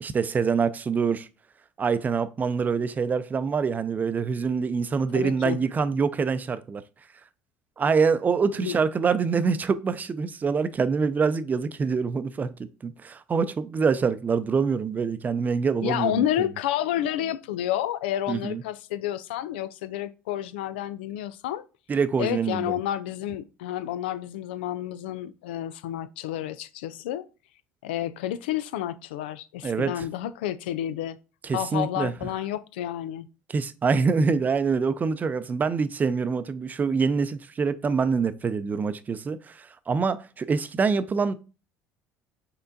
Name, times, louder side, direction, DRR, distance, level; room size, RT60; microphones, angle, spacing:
voice 1, 0.0-1.3 1.8-6.8 7.8-12.5 12.8-16.5 18.3-18.6 21.9-22.7 29.6-30.1 31.4-32.1 33.5-41.3, right 5 dB, 30° right, 0.5 m, -25 dB
voice 2, 5.1-5.6 8.6-8.8 15.8-21.7 22.2-27.3 27.8-31.2 31.5-33.3, left 12 dB, 85° left, 0.3 m, -30 dB
5.6 x 3.7 x 2.6 m
hypercardioid pair, 70°, 5 cm